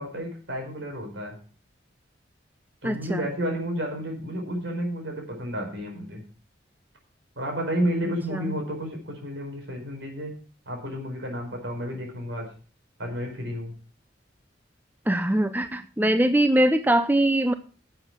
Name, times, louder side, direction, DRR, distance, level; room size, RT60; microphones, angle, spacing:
voice 1, 0.0-1.4 2.8-6.2 7.4-10.3 10.6-12.5 13.0-13.7, equal, 70° right, 2 dB, 4.9 m, -31 dB
voice 2, 2.8-3.3 8.0-8.6 15.1-17.5, right 1 dB, 10° right, 10 dB, 0.6 m, -22 dB
11.0 x 7.8 x 5.9 m, 0.39 s
head